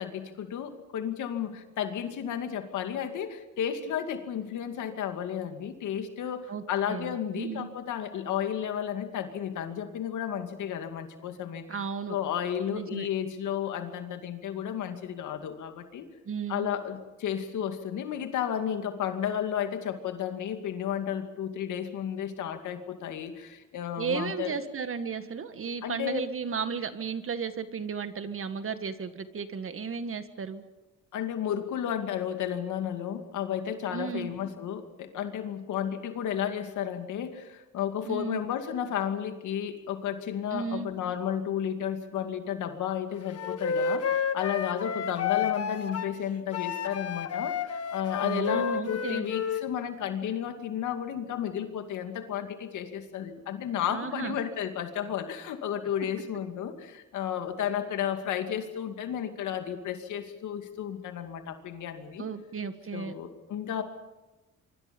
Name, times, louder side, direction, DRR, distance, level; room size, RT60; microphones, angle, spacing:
voice 1, 0.0-11.6 12.1-16.1 16.5-24.6 25.8-26.3 31.1-62.2 62.9-63.8, left 9 dB, 80° left, 6 dB, 2.5 m, -33 dB
voice 2, 6.5-7.7 11.7-12.2 12.7-13.1 16.3-16.7 24.0-30.6 33.9-34.3 38.1-38.4 40.5-40.9 48.2-49.3 53.9-54.4 62.2-63.2, right 6 dB, 45° right, 10 dB, 1.8 m, -34 dB
Wind instrument woodwind instrument, 43.4-46.1 46.5-49.6, left 7 dB, 55° left, 1.4 m, -30 dB
25.5 x 24.5 x 5.4 m, 1.1 s
cardioid pair, 90°, 30 cm